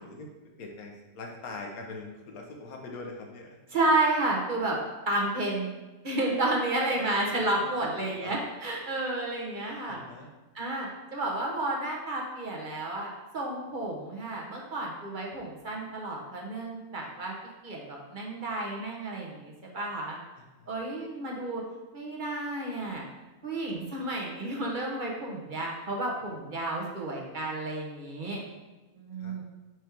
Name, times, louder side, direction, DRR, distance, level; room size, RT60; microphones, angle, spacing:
voice 1, 0.0-3.6 6.9-8.4 9.9-10.3 20.4-20.8 29.2-29.3, left 2 dB, 70° left, 2 dB, 1.4 m, -43 dB
voice 2, 3.7-4.8 5.1-5.8 6.0-10.0 10.5-17.3 17.6-20.2 20.7-21.6 21.9-23.0 23.4-28.4 28.9-29.4, right 2 dB, 35° right, -2 dB, 1.2 m, -31 dB
5.4 x 4.8 x 4.5 m, 1.1 s
omnidirectional pair, 1.6 m